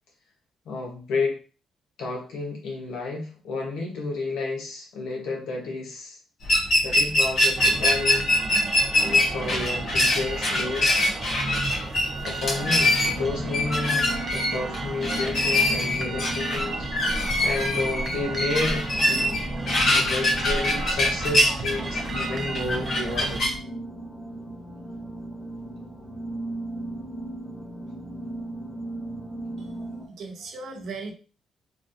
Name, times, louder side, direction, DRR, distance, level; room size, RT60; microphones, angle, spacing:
voice 1, 0.6-1.4 2.0-6.2 6.8-8.3 9.0-10.9 12.2-16.9 17.4-19.4 19.8-23.5, left 3 dB, 80° left, 0 dB, 1.1 m, -31 dB
sound 1, 6.4-23.5, left 1 dB, 55° left, 1.1 m, -24 dB
sound 2, 7.6-23.4, right 3 dB, 35° right, 0.4 m, -34 dB
sound 3, 12.6-30.1, right 1 dB, 5° right, 1.3 m, -37 dB
voice 2, 29.6-31.1, right 3 dB, 70° right, 2 dB, 0.8 m, -38 dB
3.1 x 2.5 x 2.7 m, 0.37 s
cardioid pair, 90°, 0 cm